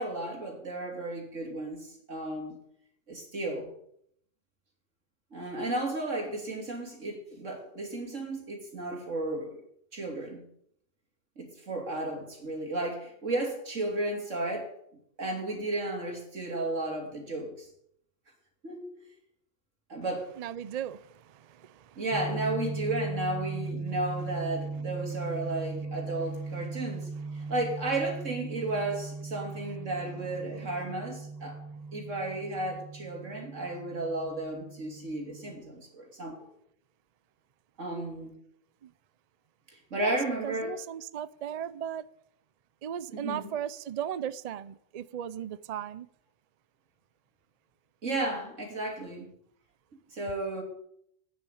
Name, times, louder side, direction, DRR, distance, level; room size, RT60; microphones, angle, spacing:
voice 1, 0.0-2.6 3.1-3.7 5.3-9.6 9.9-10.4 11.4-14.7 15.2-17.7 18.6-18.9 19.9-20.3 22.0-31.6 31.9-36.4 37.8-38.4 39.7-40.7 43.2-43.5 48.0-49.3 50.1-50.6, right 2 dB, 80° right, 3.5 m, -33 dB
voice 2, 20.4-22.0 24.7-24.9 25.2-25.7 26.8-27.5 29.8-30.7 38.8-38.9 40.0-40.2 40.4-42.0 42.8-46.1, right 9 dB, 55° right, 0.4 m, -38 dB
sound 1, 22.1-35.6, right 3 dB, ahead, 0.8 m, -38 dB
9.5 x 8.8 x 9.1 m
omnidirectional pair, 1.3 m